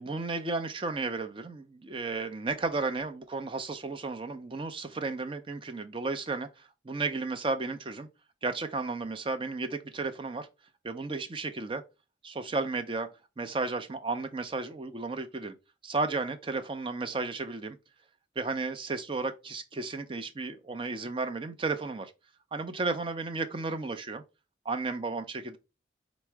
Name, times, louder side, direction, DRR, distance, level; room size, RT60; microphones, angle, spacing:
voice 1, 0.0-8.1 8.4-10.5 10.8-11.8 12.2-13.1 13.4-15.6 15.8-17.8 18.4-22.1 22.5-24.2 24.7-25.6, right 3 dB, 25° right, 0.5 m, -33 dB
4.5 x 2.0 x 4.5 m
head